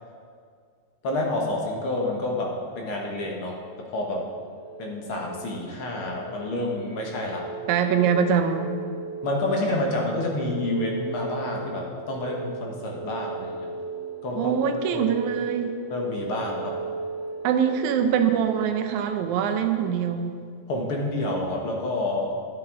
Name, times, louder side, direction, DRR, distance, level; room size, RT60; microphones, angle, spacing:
voice 1, 1.0-3.5 3.9-4.2 4.8-7.5 9.2-13.7 14.2-14.5 14.9-15.2 15.9-16.7 20.7-22.3, left 2 dB, 60° left, 0 dB, 1.8 m, -28 dB
sound 1, 3.4-18.0, right 4 dB, 30° left, 1.5 m, -37 dB
voice 2, 7.7-8.7 14.4-15.8 17.4-20.4, right 7 dB, 90° right, 6 dB, 2.1 m, -23 dB
12.0 x 10.5 x 3.7 m, 2.1 s
omnidirectional pair, 3.3 m